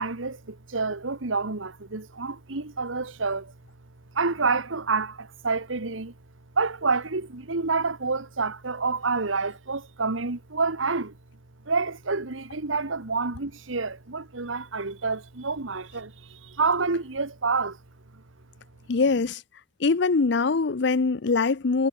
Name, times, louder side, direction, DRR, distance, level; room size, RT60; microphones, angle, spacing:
voice 1, 0.0-3.5 4.1-6.1 6.5-11.1 11.6-17.8, right 4 dB, 80° right, 1.6 m, -28 dB
voice 2, 18.9-19.4 19.8-21.9, left 4 dB, 60° left, 0.6 m, -23 dB
head